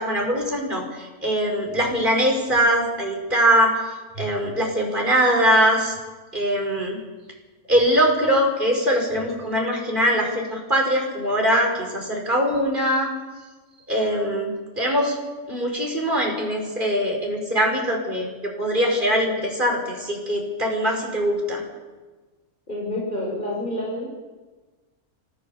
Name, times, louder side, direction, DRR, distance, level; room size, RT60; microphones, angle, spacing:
voice 1, 0.0-3.7 4.2-6.0 6.3-7.0 7.7-13.1 13.9-15.1 15.5-21.6, equal, 35° right, 1 dB, 5.4 m, -22 dB
voice 2, 22.7-24.1, left 1 dB, 30° left, -3 dB, 5.9 m, -28 dB
25.0 x 16.5 x 7.1 m, 1.3 s
omnidirectional pair, 1.5 m